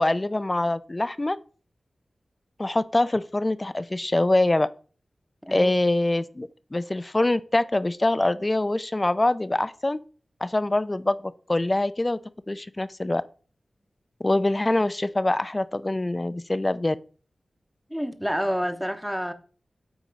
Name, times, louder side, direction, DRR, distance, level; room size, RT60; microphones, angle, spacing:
voice 1, 0.0-1.4 2.6-4.7 5.5-10.0 10.4-12.2 12.5-13.2 14.2-17.0, left 2 dB, 25° left, 0.4 m, -24 dB
voice 2, 17.9-19.3, equal, ahead, 0.7 m, -28 dB
8.4 x 3.0 x 5.1 m
wide cardioid pair, 80°, 0 cm